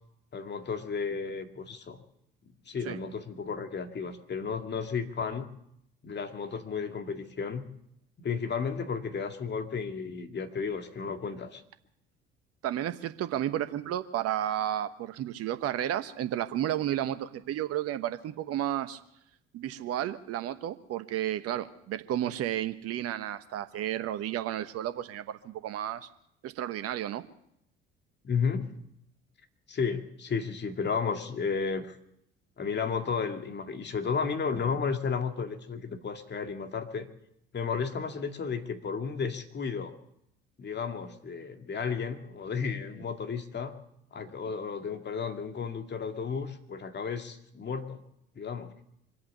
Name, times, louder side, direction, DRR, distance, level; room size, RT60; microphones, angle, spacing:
voice 1, 0.3-2.0 2.7-5.5 6.0-7.7 8.2-11.6 28.2-28.8 29.7-31.9 32.6-37.1 37.5-39.9 40.6-43.8 44.1-48.0 48.4-48.7, left 5 dB, 35° left, 6 dB, 2.1 m, -33 dB
voice 2, 12.6-19.0 19.5-26.1 26.4-27.2, right 11 dB, 55° right, 11 dB, 1.1 m, -32 dB
25.0 x 8.6 x 6.6 m, 0.75 s
hypercardioid pair, 60°, 29 cm